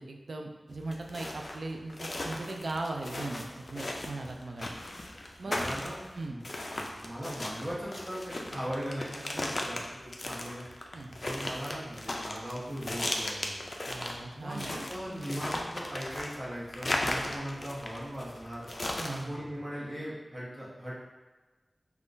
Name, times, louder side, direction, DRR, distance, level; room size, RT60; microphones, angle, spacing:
voice 1, 0.0-4.7 5.4-5.6 6.2-6.4 10.9-11.2 13.9-14.8 19.0-19.3, right 2 dB, 75° right, 3 dB, 0.3 m, -38 dB
sound 1, 0.7-19.2, left 1 dB, 45° left, 0.3 m, -36 dB
voice 2, 5.4-6.0 6.3-10.7 11.2-13.6 14.3-18.7 19.1-20.9, equal, 30° right, -7 dB, 1.0 m, -39 dB
3.5 x 2.3 x 2.5 m, 1.2 s
wide cardioid pair, 80°, 0 cm